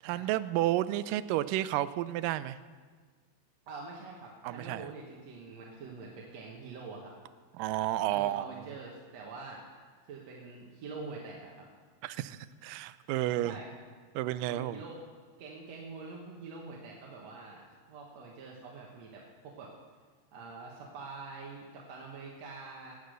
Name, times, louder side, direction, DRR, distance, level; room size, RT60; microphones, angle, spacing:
voice 1, 0.0-2.6 4.4-4.9 7.6-8.5 12.0-13.5 14.2-14.8, right 14 dB, 85° right, 15 dB, 2.2 m, -31 dB
voice 2, 3.7-7.1 8.1-9.6 10.0-11.7 13.0-13.7 14.5-15.0 15.4-17.6 17.9-19.7 20.3-22.9, right 4 dB, 60° right, -2 dB, 2.3 m, -45 dB
18.0 x 8.2 x 6.5 m, 1.6 s
omnidirectional pair, 3.8 m